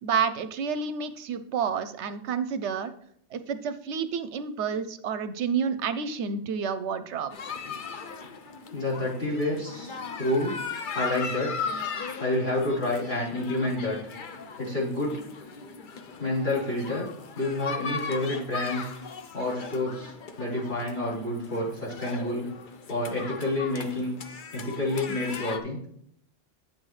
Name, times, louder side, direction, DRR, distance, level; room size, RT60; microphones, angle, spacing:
voice 1, 0.0-2.9 3.3-7.4, right 6 dB, 70° right, 12 dB, 0.8 m, -29 dB
sound 1, 7.3-25.6, left 5 dB, 50° left, 0.7 m, -38 dB
voice 2, 8.7-10.6 10.9-11.7 12.2-14.0 14.6-15.2 16.2-17.0 17.3-18.9 19.3-22.5 22.9-24.1 24.5-25.8, left 1 dB, 70° left, -8 dB, 4.6 m, -29 dB
9.0 x 7.6 x 3.2 m, 0.68 s
omnidirectional pair, 1.3 m